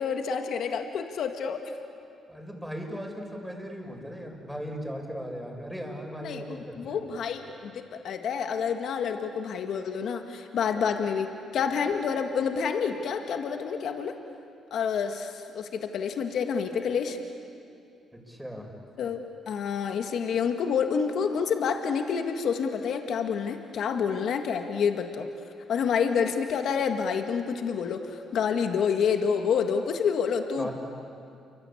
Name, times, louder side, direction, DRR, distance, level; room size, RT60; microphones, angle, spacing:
voice 1, 0.0-1.7 6.2-14.1 14.7-17.2 19.0-19.2 19.5-25.3 25.7-30.7, left 6 dB, 70° left, 5 dB, 1.9 m, -28 dB
voice 2, 2.3-7.0 18.1-18.7 30.6-30.7, equal, 5° right, 1 dB, 6.3 m, -37 dB
29.0 x 24.0 x 8.6 m, 2.5 s
supercardioid pair, 70°, 0 cm